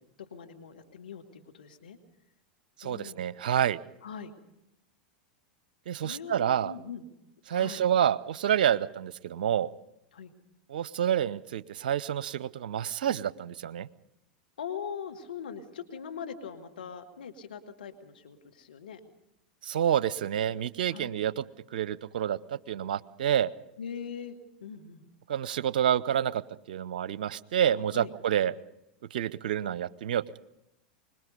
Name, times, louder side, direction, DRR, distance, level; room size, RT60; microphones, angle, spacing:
voice 1, 0.2-2.0 2.8-3.2 4.0-4.3 5.9-7.1 7.5-7.8 10.1-10.3 14.6-19.0 20.9-21.2 23.8-24.4 24.6-25.1 27.9-28.1, left 7 dB, 75° left, 7 dB, 2.3 m, -41 dB
voice 2, 2.8-3.8 5.9-6.7 7.5-9.7 10.7-13.9 19.6-21.4 21.7-22.4 22.7-23.5 25.3-26.4 26.7-28.5 29.1-30.4, right 10 dB, 70° right, 18 dB, 0.7 m, -28 dB
25.0 x 21.0 x 5.4 m, 0.85 s
hypercardioid pair, 95°, 5 cm